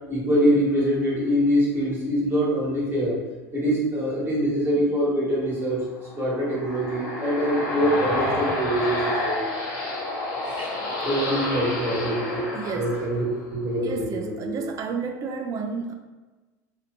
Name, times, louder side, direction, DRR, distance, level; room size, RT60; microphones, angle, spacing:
voice 1, 0.1-3.2 3.5-5.8 6.1-9.5 10.4-10.7 11.0-12.5 12.7-13.2 13.5-14.6, equal, 20° right, -5 dB, 1.5 m, -24 dB
sound 1, 6.0-13.6, left 2 dB, 55° left, 1.0 m, -29 dB
voice 2, 12.5-13.0 13.8-15.9, right 5 dB, 40° right, 5 dB, 0.4 m, -31 dB
2.8 x 2.5 x 3.2 m, 1.2 s
hypercardioid pair, 90°, 9 cm